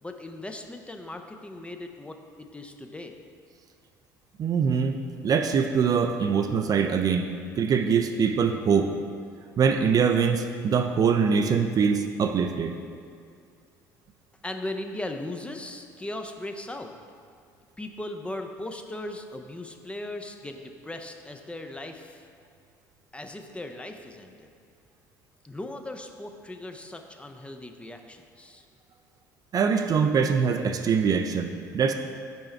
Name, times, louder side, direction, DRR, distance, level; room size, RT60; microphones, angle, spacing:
voice 1, 0.0-3.2 14.4-16.9 17.8-22.3 23.1-24.5 25.4-28.7, left 1 dB, 10° left, 5 dB, 0.5 m, -38 dB
voice 2, 4.4-7.3 7.6-8.9 9.6-12.8 29.5-31.9, right 6 dB, 40° right, 6 dB, 0.4 m, -23 dB
5.4 x 4.5 x 4.4 m, 2.2 s
hypercardioid pair, 60°, 10 cm